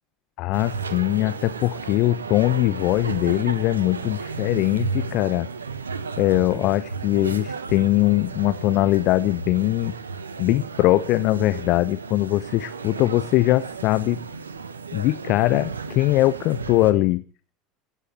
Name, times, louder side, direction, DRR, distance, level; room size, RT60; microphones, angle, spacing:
voice 1, 0.4-5.5 6.2-9.9 10.4-14.2 14.9-17.2, left 17 dB, 50° left, 17 dB, 0.7 m, -21 dB
sound 1, 0.5-16.9, right 5 dB, 80° right, 1.3 m, -34 dB
16.0 x 9.9 x 8.8 m, 0.42 s
figure-of-eight pair, 75°, 0 cm